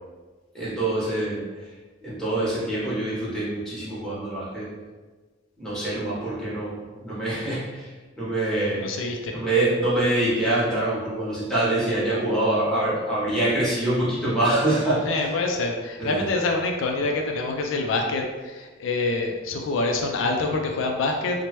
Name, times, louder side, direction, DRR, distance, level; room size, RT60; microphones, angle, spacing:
voice 1, 0.5-1.7 2.0-4.7 5.6-9.0 9.3-15.0 16.0-16.3, right 1 dB, 5° left, -10 dB, 1.0 m, -25 dB
voice 2, 8.8-9.3 15.1-21.4, left 3 dB, 75° left, 2 dB, 0.3 m, -26 dB
3.0 x 2.1 x 2.9 m, 1.3 s
head